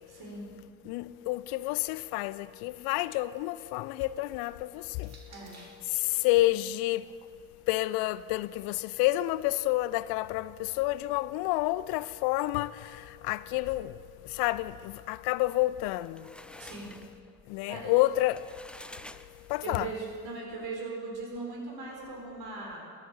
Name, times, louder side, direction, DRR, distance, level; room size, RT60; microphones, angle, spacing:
voice 1, 0.1-0.5 5.3-5.6 16.6-16.9 17.7-17.9 19.6-22.8, right 3 dB, 60° right, 4.1 m, -39 dB
voice 2, 0.9-5.1 6.2-7.0 7.7-10.5 10.8-12.7 13.2-13.9 14.4-16.2 17.5-18.4 19.5-19.9, left 17 dB, 65° left, 0.5 m, -29 dB
sound 1, 3.5-6.0 6.9-9.0, right 3 dB, 40° right, 2.7 m, -60 dB
sound 2, 15.7-19.9, left 1 dB, 5° left, 0.4 m, -50 dB
13.5 x 10.5 x 6.9 m
hypercardioid pair, 50°, 42 cm